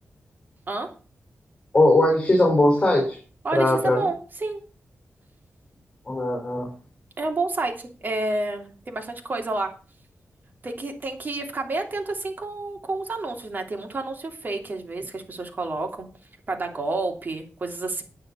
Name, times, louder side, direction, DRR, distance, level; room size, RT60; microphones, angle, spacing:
voice 1, 1.7-3.2 3.5-4.1 6.1-6.7, left 1 dB, 25° left, 0 dB, 4.5 m, -19 dB
voice 2, 3.4-4.6 7.2-9.7 10.6-16.1 16.5-18.0, right 2 dB, 40° right, 3 dB, 2.9 m, -29 dB
9.6 x 9.6 x 5.6 m, 0.36 s
wide cardioid pair, 135°, 5 cm